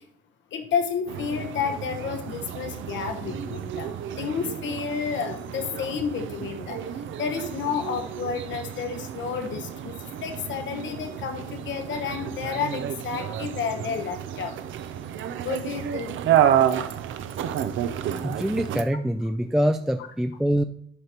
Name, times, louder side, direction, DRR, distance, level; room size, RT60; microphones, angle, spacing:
voice 1, 0.5-6.8 7.2-14.6 15.4-16.2 17.5-17.7, left 6 dB, 70° left, 6 dB, 1.0 m, -31 dB
sound 1, 1.1-18.8, right 10 dB, 75° right, 0.6 m, -30 dB
voice 2, 18.2-20.6, equal, 5° right, 8 dB, 0.3 m, -24 dB
11.5 x 5.1 x 3.0 m, 0.65 s
cardioid pair, 90°, 20 cm